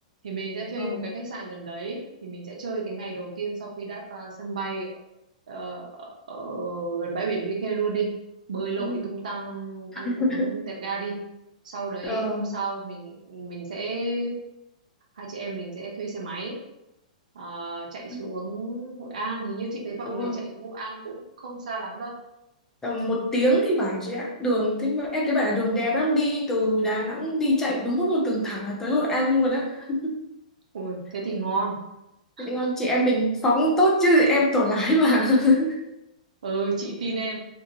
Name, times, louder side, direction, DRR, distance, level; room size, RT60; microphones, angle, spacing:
voice 1, 0.2-4.9 5.5-8.1 8.5-11.2 11.6-14.3 15.2-16.6 17.3-22.1 30.7-31.8 32.4-32.5 36.4-37.4, right 3 dB, 80° right, -1 dB, 0.6 m, -32 dB
voice 2, 10.0-10.6 12.0-12.5 18.1-18.2 20.0-20.4 22.8-30.2 32.4-35.8, equal, 10° left, -3 dB, 0.7 m, -23 dB
2.5 x 2.2 x 2.7 m, 0.88 s
hypercardioid pair, 125°, 4 cm